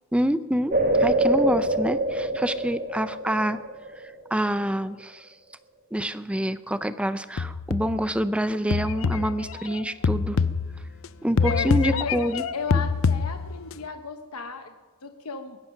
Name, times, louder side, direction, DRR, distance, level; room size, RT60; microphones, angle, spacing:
voice 1, 0.1-3.6 4.0-5.3 5.9-10.4 11.2-12.4, right 1 dB, 5° right, 13 dB, 0.5 m, -27 dB
sound 1, 0.7-4.3, right 1 dB, 40° right, 1.7 m, -24 dB
sound 2, 7.4-8.1 8.7-11.1 11.4-13.7, left 5 dB, 60° left, 0.5 m, -25 dB
voice 2, 11.4-12.1 12.5-14.7 15.0-15.6, left 4 dB, 80° left, 6 dB, 1.0 m, -34 dB
21.0 x 10.5 x 5.8 m, 1.4 s
head